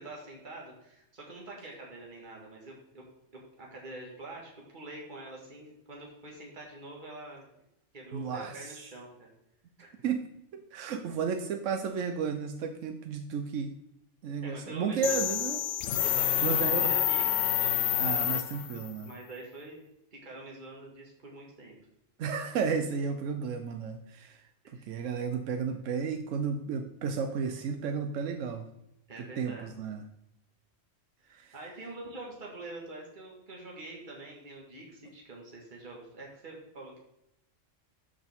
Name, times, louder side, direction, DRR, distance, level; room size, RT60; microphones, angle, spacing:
voice 1, 0.0-3.0 3.5-7.5 7.9-9.3 9.8-9.9 14.4-15.1 16.0-18.0 19.0-19.8 20.1-21.8 24.7-25.0 29.1-29.7 31.3-37.0, right 2 dB, 40° right, -2 dB, 2.0 m, -45 dB
voice 2, 8.1-8.8 10.0-10.2 10.5-13.7 14.2-15.6 16.4-16.9 18.0-19.1 22.2-28.7 29.2-30.1 31.3-31.5, right 6 dB, 85° right, 7 dB, 1.1 m, -33 dB
sound 1, 15.0-18.9, left 12 dB, 80° left, 0.9 m, -28 dB
12.5 x 5.2 x 3.6 m, 0.81 s
omnidirectional pair, 1.3 m